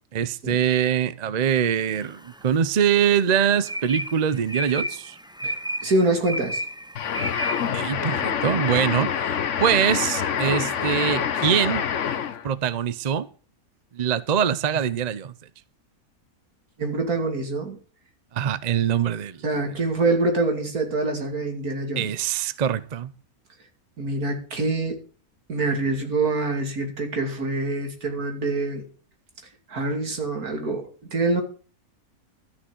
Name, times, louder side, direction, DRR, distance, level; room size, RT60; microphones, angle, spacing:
voice 1, 0.1-5.2 7.7-9.1 9.6-11.8 12.4-13.3 13.9-15.3 18.3-19.4 22.0-23.1, right 8 dB, 40° right, 0.6 m, -23 dB
sound 1, 1.7-2.4 2.8-7.7, equal, 5° right, 0.6 m, -32 dB
voice 2, 5.4-6.6 16.8-17.8 19.4-22.1 24.0-25.0 25.5-28.9 29.7-31.4, right 2 dB, 85° right, 3.0 m, -25 dB
sound 2, 7.0-12.5, left 8 dB, 60° left, 1.2 m, -26 dB
13.5 x 6.3 x 7.7 m
omnidirectional pair, 1.5 m